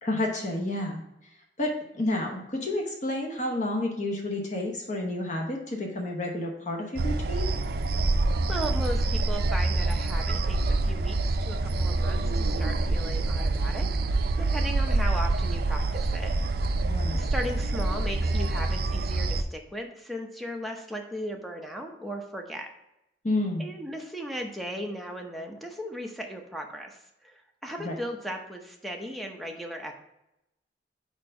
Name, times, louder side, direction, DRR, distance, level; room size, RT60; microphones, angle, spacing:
voice 1, 0.0-1.0 1.6-7.5 16.8-17.3 23.2-23.7 27.8-28.0, left 1 dB, 40° left, 1 dB, 0.9 m, -30 dB
sound 1, 7.0-19.4, right 2 dB, 60° right, 0.4 m, -26 dB
voice 2, 8.5-13.9 14.3-16.9 17.1-22.7 23.6-29.9, equal, ahead, 2 dB, 0.7 m, -37 dB
4.7 x 4.4 x 5.3 m, 0.87 s
head